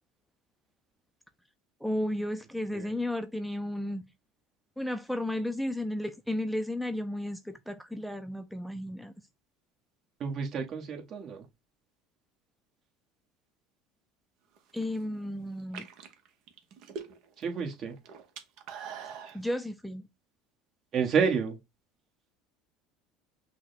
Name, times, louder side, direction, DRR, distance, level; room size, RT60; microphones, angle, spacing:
voice 1, 1.8-4.0 4.8-9.1 14.7-15.9 19.3-20.0, left 1 dB, ahead, 0.5 m, -33 dB
voice 2, 10.2-11.5 17.4-18.0 20.9-21.6, right 6 dB, 45° right, 1.4 m, -30 dB
sound 1, 14.6-15.0 15.6-17.4 17.7-19.4, right 6 dB, 65° right, 1.0 m, -43 dB
5.9 x 2.2 x 4.0 m
supercardioid pair, 95°, 0 cm